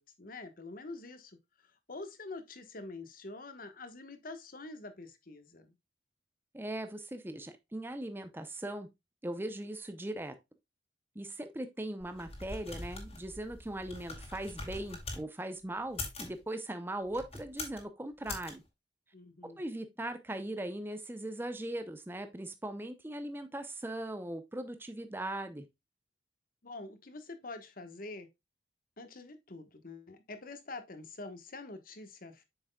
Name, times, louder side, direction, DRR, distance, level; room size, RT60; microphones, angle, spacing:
voice 1, 0.0-1.4 1.6-5.7 19.1-19.6 26.6-28.3 29.0-32.4, left 3 dB, 50° left, 1.2 m, -46 dB
voice 2, 6.5-8.9 9.2-10.4 11.2-18.6 19.4-25.7, right 1 dB, 10° right, 0.6 m, -39 dB
sound 1, 12.0-15.2 15.8-16.4 17.1-17.8 18.2-18.5, left 3 dB, 35° left, 2.2 m, -43 dB
8.0 x 6.1 x 2.2 m
head